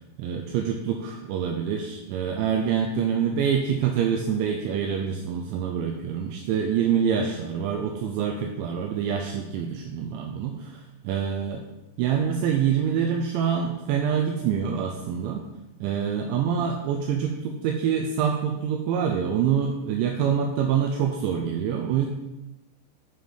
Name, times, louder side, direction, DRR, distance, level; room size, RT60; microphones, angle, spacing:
voice 1, 0.2-11.6 12.0-15.5 15.8-22.1, right 7 dB, 85° right, 3 dB, 2.6 m, -26 dB
7.7 x 5.3 x 4.9 m, 1.0 s
omnidirectional pair, 5.8 m